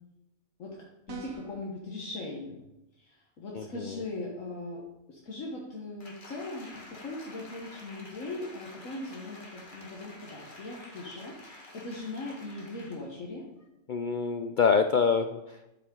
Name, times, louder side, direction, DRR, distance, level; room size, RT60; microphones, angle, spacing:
voice 1, 0.6-2.6 3.0-4.8 5.1-13.5, left 2 dB, 70° left, -3 dB, 1.7 m, -40 dB
sound 1, 1.1-1.6, right 5 dB, 70° right, 1.5 m, -43 dB
voice 2, 3.5-4.0 13.9-15.7, left 5 dB, 90° left, 8 dB, 0.4 m, -26 dB
Applause, 6.0-13.1 13.6-13.7, left 2 dB, 35° left, 1.7 m, -49 dB
11.5 x 7.4 x 3.8 m, 0.92 s
omnidirectional pair, 1.5 m